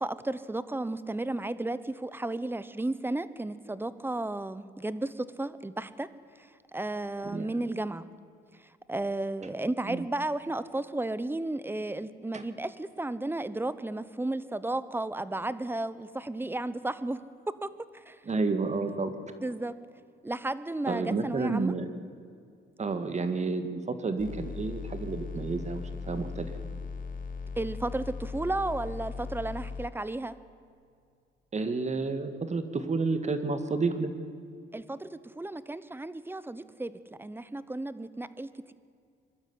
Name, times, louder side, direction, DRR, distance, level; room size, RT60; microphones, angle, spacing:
voice 1, 0.0-6.1 6.4-8.1 8.9-17.2 17.6-17.7 17.9-18.2 19.4-19.7 20.2-21.7 27.6-30.4 34.7-38.7, right 2 dB, 10° right, 15 dB, 1.0 m, -33 dB
voice 2, 7.2-7.6 9.8-10.1 12.3-12.4 18.3-19.1 20.9-21.9 22.8-26.5 31.5-34.1, right 3 dB, 35° right, 9 dB, 1.9 m, -30 dB
sound 1, 24.2-29.9, left 4 dB, 45° left, 2.0 m, -38 dB
23.0 x 12.5 x 9.7 m, 2.3 s
cardioid pair, 90°, 20 cm